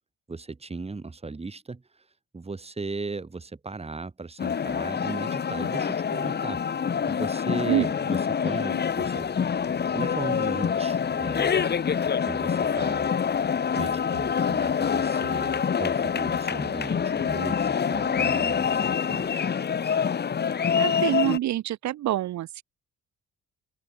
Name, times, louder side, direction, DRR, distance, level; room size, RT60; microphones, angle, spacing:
voice 1, 0.3-1.8 2.3-6.6 7.1-8.2 8.4-11.7 12.3-13.1 13.8-19.3, right 3 dB, 20° right, 2.0 m, -37 dB
sound 1, 4.4-21.4, left 7 dB, 35° left, 0.9 m, -26 dB
sound 2, 8.8-17.4, left 8 dB, 55° left, 6.5 m, -53 dB
voice 2, 20.8-22.6, right 14 dB, 70° right, 0.8 m, -26 dB
open air
cardioid pair, 90°, 30 cm